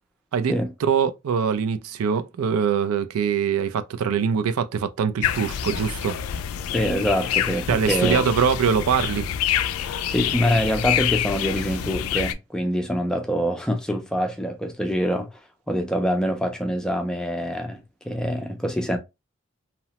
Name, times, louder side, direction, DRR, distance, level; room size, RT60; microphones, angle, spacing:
voice 1, 0.8-6.2 7.7-9.3, right 7 dB, 90° right, 0.4 m, -23 dB
sound 1, 5.2-12.3, left 10 dB, 85° left, 0.3 m, -27 dB
voice 2, 6.7-8.2 10.1-15.4 15.7-19.0, equal, 5° left, 0.3 m, -25 dB
2.8 x 2.0 x 2.8 m
head